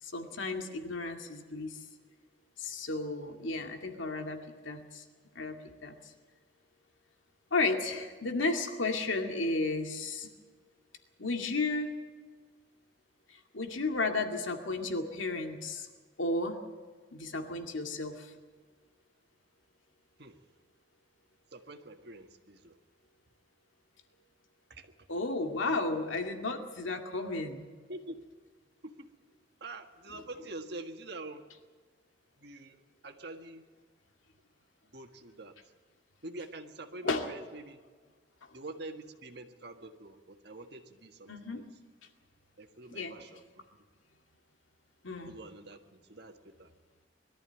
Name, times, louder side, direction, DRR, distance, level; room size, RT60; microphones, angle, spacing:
voice 1, 0.0-1.8 2.6-4.4 4.6-5.0 5.4-5.6 5.8-5.9 7.5-10.3 11.2-12.0 13.5-15.9 16.2-16.6 17.1-18.3 25.1-27.6 37.0-37.3 41.3-41.6 42.9-43.1 45.0-45.4, left 3 dB, 85° left, 5 dB, 2.2 m, -33 dB
voice 2, 21.5-22.8 24.7-24.9 26.1-26.2 27.9-28.2 28.8-29.1 29.6-31.4 32.4-33.6 34.9-35.5 36.2-37.8 38.5-41.7 42.6-43.6 45.2-46.7, right 2 dB, 55° right, 5 dB, 1.7 m, -46 dB
22.0 x 13.5 x 9.2 m, 1.5 s
head